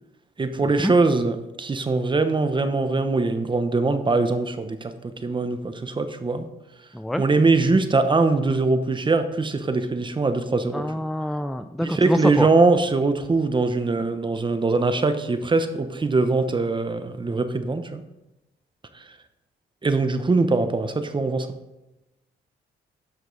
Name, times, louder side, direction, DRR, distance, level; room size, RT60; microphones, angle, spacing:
voice 1, 0.4-6.4 7.2-10.9 11.8-18.0 19.8-21.5, right 3 dB, 25° right, 9 dB, 0.9 m, -22 dB
voice 2, 10.7-12.5, equal, ahead, 10 dB, 0.3 m, -25 dB
12.5 x 5.2 x 4.0 m, 0.98 s
cardioid pair, 90°, 20 cm